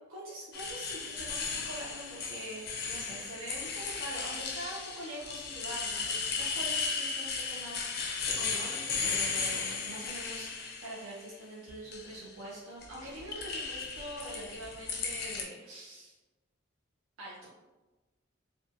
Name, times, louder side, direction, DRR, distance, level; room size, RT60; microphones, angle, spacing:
voice 1, 0.1-16.2 17.2-17.5, right 1 dB, 85° right, -5 dB, 0.5 m, -44 dB
sound 1, 0.5-11.1 11.7-12.3 12.8-15.4, left 5 dB, 50° left, 0.4 m, -35 dB
2.6 x 2.2 x 2.5 m, 1.1 s
head